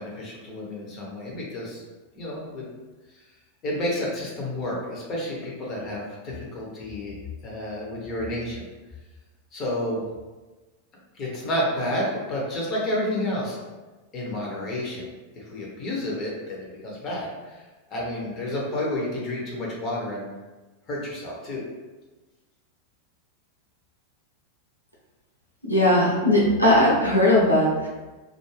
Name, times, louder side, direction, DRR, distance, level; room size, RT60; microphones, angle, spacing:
voice 1, 0.0-1.8 2.1-2.7 3.2-3.3 3.6-7.1 7.4-8.7 9.5-10.0 11.1-13.6 14.1-17.6 17.9-20.3 20.9-21.6, left 1 dB, 35° left, -3 dB, 0.8 m, -30 dB
voice 2, 25.7-27.9, left 1 dB, 90° right, -5 dB, 0.5 m, -19 dB
2.4 x 2.2 x 3.2 m, 1.2 s
figure-of-eight pair, 90°, 0 cm